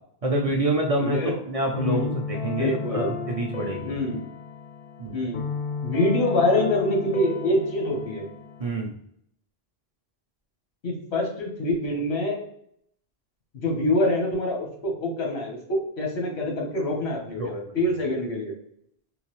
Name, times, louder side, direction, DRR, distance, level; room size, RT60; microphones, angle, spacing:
voice 1, 0.2-4.0 5.0-5.2 8.6-8.9 17.4-17.6, right 2 dB, 50° right, 1 dB, 0.5 m, -27 dB
sound 1, 0.9-8.7, left 5 dB, 60° left, 0.7 m, -34 dB
voice 2, 1.0-1.3 1.8-2.2 2.6-3.1 3.8-4.2 5.1-5.5 5.8-8.3 10.8-12.4 13.5-18.6, left 1 dB, 90° left, 1 dB, 1.3 m, -25 dB
3.8 x 2.6 x 3.0 m, 0.69 s
omnidirectional pair, 1.0 m